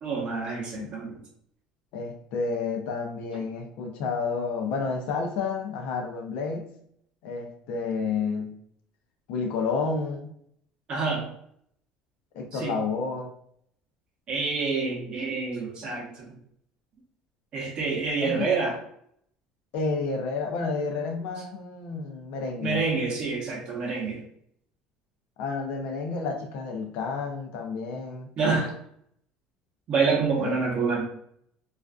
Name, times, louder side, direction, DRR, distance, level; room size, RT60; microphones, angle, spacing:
voice 1, 0.0-1.2 10.9-11.3 12.5-12.8 14.3-16.4 17.5-18.8 22.6-24.2 28.4-28.7 29.9-31.0, right 4 dB, 45° right, -3 dB, 0.7 m, -27 dB
voice 2, 1.9-6.7 7.2-8.5 9.3-10.3 12.3-13.3 18.2-18.5 19.7-22.8 25.4-28.3 30.4-30.6, left 4 dB, 70° left, 3 dB, 0.5 m, -30 dB
2.4 x 2.3 x 2.3 m, 0.68 s
cardioid pair, 135°, 2 cm